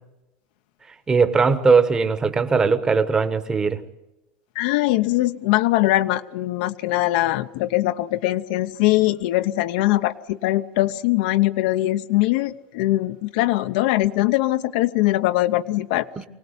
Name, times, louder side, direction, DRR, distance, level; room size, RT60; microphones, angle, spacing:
voice 1, 1.1-3.8 16.2-16.3, right 4 dB, 15° right, 10 dB, 1.1 m, -19 dB
voice 2, 4.5-16.1, left 17 dB, 65° left, 9 dB, 0.8 m, -21 dB
24.5 x 18.0 x 8.1 m, 0.98 s
cardioid pair, 175°, 5 cm